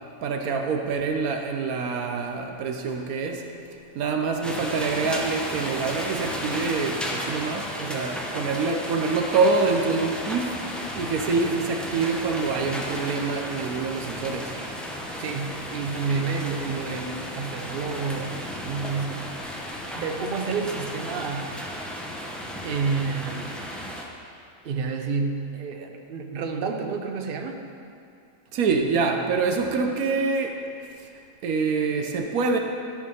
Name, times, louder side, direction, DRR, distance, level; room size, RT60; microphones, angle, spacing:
voice 1, 0.2-3.5 3.9-10.6 11.0-14.6 28.5-30.6 31.0-31.1 31.4-32.6, right 4 dB, 80° right, 4 dB, 1.2 m, -26 dB
sound 1, 4.4-24.0, equal, ahead, 0.5 m, -34 dB
voice 2, 15.2-18.4 18.6-19.3 19.9-21.6 22.0-22.2 22.6-23.6 24.6-27.6, right 5 dB, 50° right, 4 dB, 0.8 m, -30 dB
13.0 x 4.9 x 5.5 m, 2.5 s
omnidirectional pair, 1.5 m